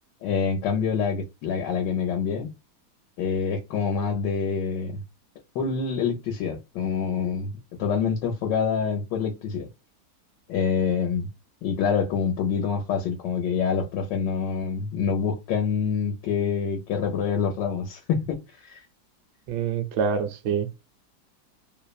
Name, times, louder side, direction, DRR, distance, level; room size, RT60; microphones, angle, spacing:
voice 1, 0.2-2.5 3.2-5.0 5.5-7.5 7.8-9.7 10.5-11.3 11.6-18.8, left 6 dB, 75° left, 1.2 m, -26 dB
voice 2, 19.5-20.8, right 6 dB, 75° right, 1.1 m, -26 dB
3.1 x 2.0 x 2.3 m
omnidirectional pair, 2.0 m